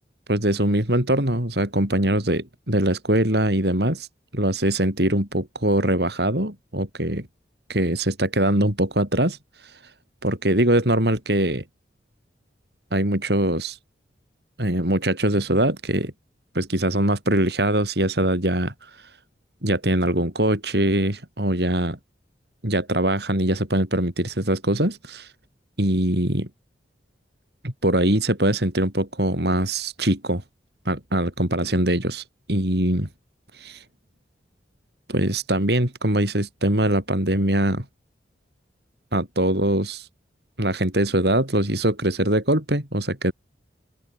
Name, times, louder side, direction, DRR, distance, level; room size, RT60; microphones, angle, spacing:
voice 1, 0.3-4.1 4.3-7.3 7.7-9.4 9.6-9.8 10.2-11.6 12.9-13.8 14.6-16.1 16.5-19.1 19.6-22.0 22.6-25.3 25.8-26.5 27.6-30.4 30.8-32.2 32.5-33.1 35.1-37.8 39.1-40.1 40.6-43.3, right 1 dB, 65° right, 5.1 m, -22 dB
open air
head